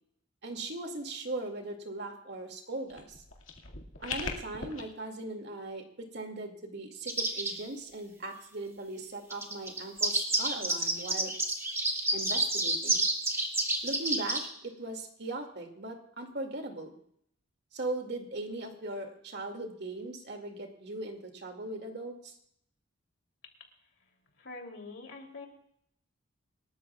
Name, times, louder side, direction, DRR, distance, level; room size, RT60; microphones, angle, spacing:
voice 1, 0.4-3.2 4.0-11.3 12.1-13.1 13.8-17.0 17.7-22.3, right 2 dB, 55° right, 3 dB, 2.3 m, -39 dB
sound 1, 2.9-4.8, left 5 dB, 90° left, 2.1 m, -39 dB
sound 2, 7.1-7.5 9.3-14.5, right 2 dB, 15° right, 1.8 m, -29 dB
voice 2, 24.4-25.5, left 3 dB, 60° left, 2 dB, 3.0 m, -44 dB
27.0 x 13.5 x 2.4 m, 0.70 s
head